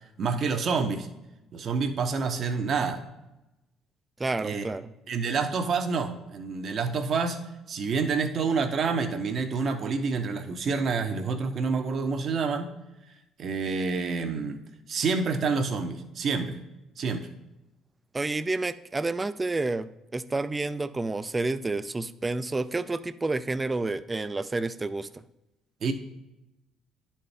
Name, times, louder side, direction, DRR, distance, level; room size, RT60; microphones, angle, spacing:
voice 1, 0.2-1.1 1.5-3.0 4.4-4.6 5.1-12.8 13.4-14.6 14.9-16.6 17.0-17.3 25.8-25.9, right 4 dB, 55° right, 7 dB, 0.8 m, -28 dB
voice 2, 4.2-4.9 18.1-19.9 20.1-25.2, right 3 dB, 20° right, 14 dB, 0.4 m, -29 dB
10.5 x 4.3 x 3.3 m, 0.96 s
supercardioid pair, 65°, 0 cm